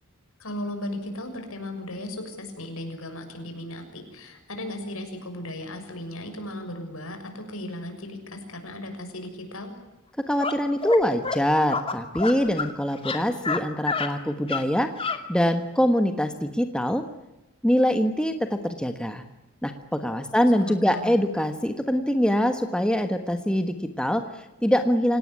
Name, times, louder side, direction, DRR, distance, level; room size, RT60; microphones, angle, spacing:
voice 1, 0.4-9.7 20.4-21.2, left 1 dB, 65° left, 6 dB, 6.7 m, -36 dB
voice 2, 10.3-14.9 15.3-17.0 17.6-19.2 19.6-25.2, equal, 5° left, 7 dB, 1.4 m, -24 dB
sound 1, 10.4-10.5 10.8-11.0 11.2-11.4 11.7-12.7 13.0-13.6 13.9-14.1 14.5-14.6 15.0-15.2, left 4 dB, 25° left, 2.4 m, -28 dB
28.0 x 18.0 x 9.8 m, 1.0 s
head